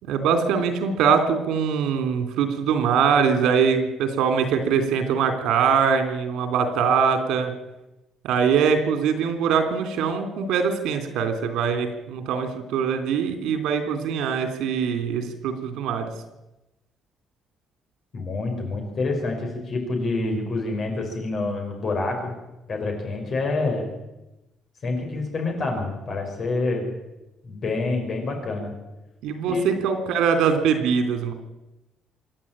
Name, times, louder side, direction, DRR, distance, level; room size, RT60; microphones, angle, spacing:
voice 1, 0.0-7.5 8.2-16.1 29.2-31.3, right 6 dB, 85° right, 7 dB, 3.3 m, -22 dB
voice 2, 18.1-22.3 22.7-23.9 24.8-26.9 27.4-28.7 29.4-29.7, left 3 dB, 35° left, 3 dB, 5.6 m, -27 dB
26.5 x 11.0 x 8.9 m, 0.98 s
cardioid pair, 175°, 0 cm